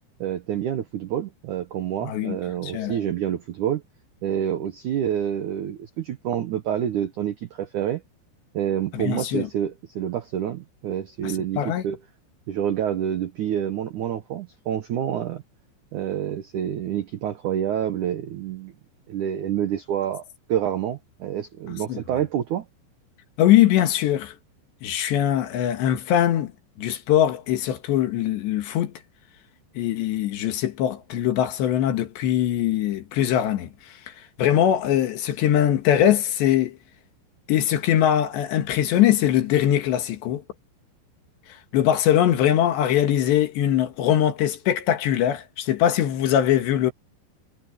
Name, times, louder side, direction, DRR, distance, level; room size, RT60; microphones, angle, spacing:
voice 1, 0.2-3.8 4.2-8.0 8.5-12.0 12.5-15.4 15.9-18.7 19.1-20.2 20.5-22.7, right 10 dB, 80° right, 1.8 m, -27 dB
voice 2, 2.0-2.4 2.6-3.0 8.9-9.5 11.2-11.8 21.9-22.0 23.4-24.3 24.8-26.5 26.8-28.9 29.8-33.7 34.4-36.8 37.5-40.4 41.7-46.9, left 11 dB, 75° left, 3.9 m, -21 dB
omnidirectional pair, 5.2 m